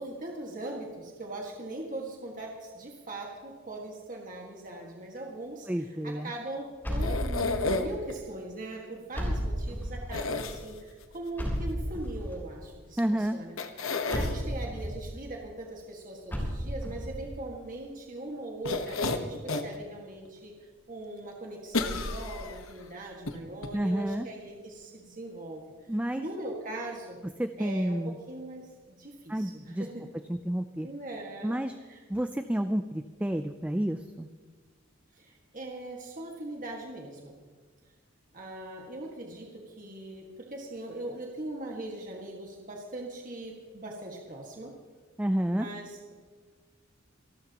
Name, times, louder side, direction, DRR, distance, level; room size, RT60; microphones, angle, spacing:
voice 1, 0.0-20.5 20.9-25.7 26.1-27.2 27.6-30.0 30.8-32.0 35.1-37.3 38.3-44.7 45.5-46.1, right 1 dB, 40° right, -1 dB, 1.8 m, -40 dB
voice 2, 5.7-6.3 13.0-13.4 23.7-24.3 25.9-26.2 27.4-28.2 29.3-29.9 30.3-30.9 31.4-31.8 32.1-34.3 45.2-45.7, right 1 dB, 5° right, 8 dB, 0.4 m, -30 dB
sound 1, 6.8-7.8 9.1-10.1 11.4-12.3 14.1-15.0 16.3-17.1, equal, 10° left, 3.7 m, -32 dB
sound 2, 7.0-8.1 10.1-11.0 13.0-13.1 13.6-14.4 18.6-19.8 20.3-20.4 21.7-22.7 23.3-23.4 23.6-23.7, left 3 dB, 75° left, 1.2 m, -31 dB
27.5 x 13.0 x 3.0 m, 1.5 s
head